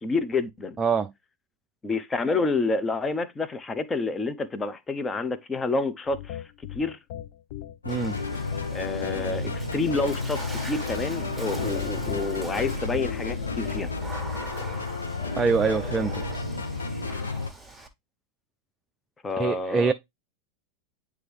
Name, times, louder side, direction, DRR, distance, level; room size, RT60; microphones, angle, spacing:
voice 1, 0.0-0.8 1.8-6.4 6.7-7.0 8.7-13.9 19.2-19.9, left 3 dB, 15° left, 0.8 m, -28 dB
voice 2, 0.8-1.1 7.9-8.2 15.4-16.2 19.4-19.9, right 5 dB, 20° right, 0.5 m, -24 dB
sound 1, 6.1-14.0, left 10 dB, 50° left, 0.6 m, -37 dB
sound 2, 7.8-17.5, left 3 dB, 80° left, 1.0 m, -32 dB
Water / Splash splatter, 7.9-17.9, right 2 dB, ahead, 1.5 m, -43 dB
9.3 x 3.5 x 3.3 m
figure-of-eight pair, 85°, 0 cm